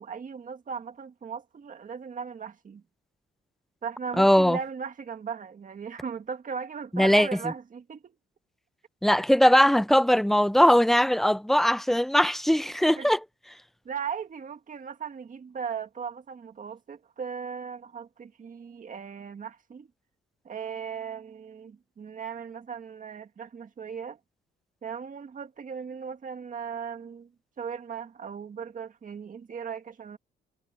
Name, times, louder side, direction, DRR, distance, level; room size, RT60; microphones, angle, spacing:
voice 1, 0.0-2.8 3.8-8.1 13.0-13.1 13.9-19.9 20.5-24.2 24.8-27.3 27.6-30.2, right 6 dB, 40° right, 1.8 m, -37 dB
voice 2, 4.2-4.6 6.9-7.3 9.0-13.2, equal, ahead, 0.6 m, -20 dB
cardioid pair, 90°, 20 cm